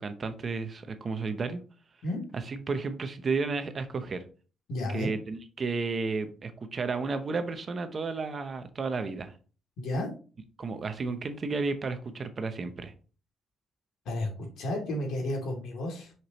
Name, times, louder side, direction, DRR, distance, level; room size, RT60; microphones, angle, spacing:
voice 1, 0.0-1.6 2.3-4.2 4.9-9.3 10.6-12.9, right 4 dB, 30° right, 0.7 m, -32 dB
voice 2, 4.7-5.1 9.8-10.1 14.1-16.1, left 1 dB, 85° left, 2.6 m, -32 dB
5.9 x 5.9 x 3.0 m
cardioid pair, 170°, 0 cm